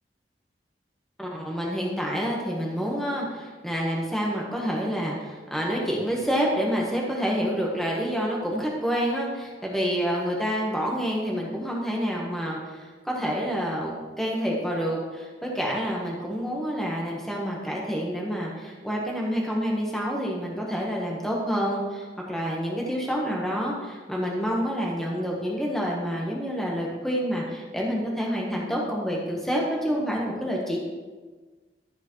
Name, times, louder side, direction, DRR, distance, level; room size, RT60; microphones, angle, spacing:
voice 1, 1.2-30.8, equal, ahead, -3 dB, 1.2 m, -28 dB
12.5 x 6.7 x 3.1 m, 1.4 s
head